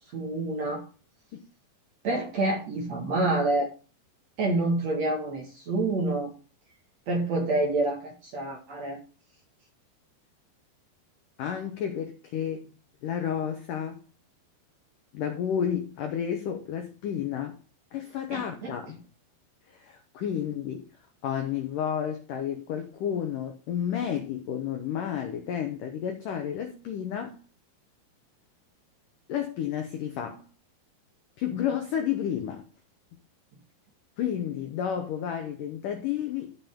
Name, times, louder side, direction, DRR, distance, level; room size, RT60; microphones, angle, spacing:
voice 1, 0.1-0.8 2.0-3.7 4.4-6.3 7.1-9.0 18.3-18.7, right 2 dB, 50° right, 2.2 m, -27 dB
voice 2, 11.4-12.7 13.0-14.0 15.1-17.6 17.9-19.0 19.7-20.9 21.2-27.4 29.3-30.5 31.4-32.7 34.2-36.6, left 9 dB, 80° left, 1.9 m, -31 dB
14.0 x 5.4 x 3.6 m
omnidirectional pair, 5.2 m